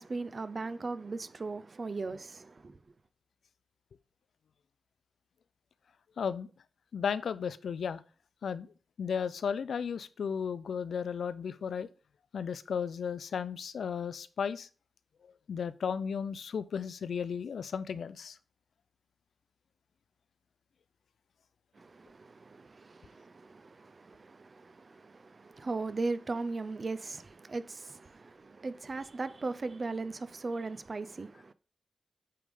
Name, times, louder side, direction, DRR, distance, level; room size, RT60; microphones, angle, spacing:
voice 1, 0.0-2.8 21.8-31.5, right 3 dB, 40° right, 0.5 m, -38 dB
voice 2, 6.2-6.5 6.9-8.0 8.4-8.7 9.0-11.9 12.3-14.7 15.5-18.4, left 7 dB, 80° left, 0.5 m, -34 dB
8.5 x 3.6 x 5.0 m
cardioid pair, 85°, 0 cm